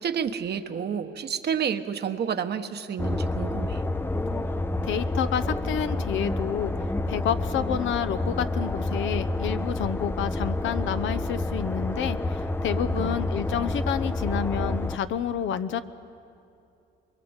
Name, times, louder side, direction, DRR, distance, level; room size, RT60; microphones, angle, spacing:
voice 1, 0.0-3.8 13.0-13.2, right 7 dB, 55° right, 8 dB, 1.2 m, -30 dB
sound 1, 3.0-15.0, left 2 dB, 10° left, 0.6 m, -29 dB
voice 2, 4.8-6.7 7.1-15.8, left 8 dB, 75° left, 11 dB, 0.9 m, -29 dB
23.5 x 22.5 x 8.1 m, 2.7 s
cardioid pair, 90°, 20 cm